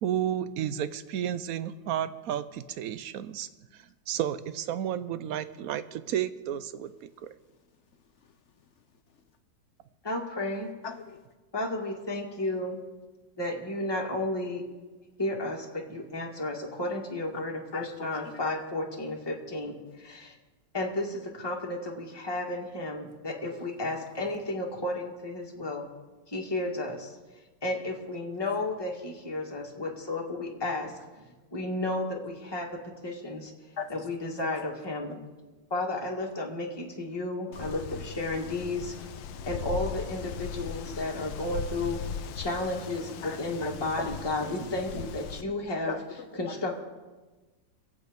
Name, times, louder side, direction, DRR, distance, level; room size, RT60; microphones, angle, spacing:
voice 1, 0.0-3.5 4.1-6.9, right 10 dB, 65° right, 13 dB, 0.9 m, -32 dB
voice 2, 10.0-10.7 11.5-12.8 13.4-14.6 15.2-20.3 20.7-25.9 26.3-27.2 27.6-30.9 31.2-31.3 31.5-32.7 33.0-33.5 33.9-35.2 35.7-38.9 39.4-42.0 42.3-45.9 46.4-46.8, left 2 dB, 15° left, -2 dB, 1.9 m, -33 dB
voice 3, 10.8-11.2 17.7-18.4 23.5-23.6 33.8-34.0 43.2-43.9 44.4-44.5 45.9-46.6, left 6 dB, 65° left, 8 dB, 0.7 m, -40 dB
Wind, 37.5-45.4, left 7 dB, 90° left, 1.5 m, -38 dB
23.0 x 8.4 x 5.3 m, 1.2 s
omnidirectional pair, 2.0 m